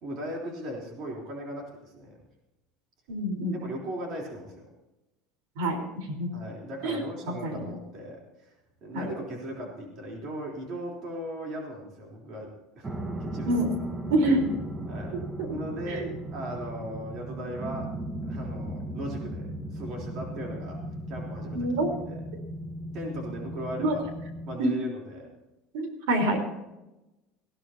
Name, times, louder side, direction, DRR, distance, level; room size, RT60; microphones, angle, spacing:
voice 1, 0.0-2.2 3.6-4.7 6.3-12.5 12.8-12.9 13.2-13.7 14.9-15.1 15.5-17.9 18.2-20.8 21.1-21.7 22.1-22.2 22.9-24.0 24.4-25.3, right 1 dB, 40° right, -1 dB, 3.6 m, -38 dB
voice 2, 3.1-3.6 5.6-6.3 6.8-7.0 7.4-7.7 8.9-9.1 13.5-13.7 14.1-14.5 15.9-16.1 21.5-21.9 23.8-23.9 24.6-24.7 25.7-26.4, right 1 dB, 85° right, 5 dB, 4.0 m, -26 dB
sound 1, 12.8-24.6, right 1 dB, 15° right, 1.0 m, -37 dB
19.0 x 16.0 x 2.8 m, 0.99 s
cardioid pair, 170°, 0 cm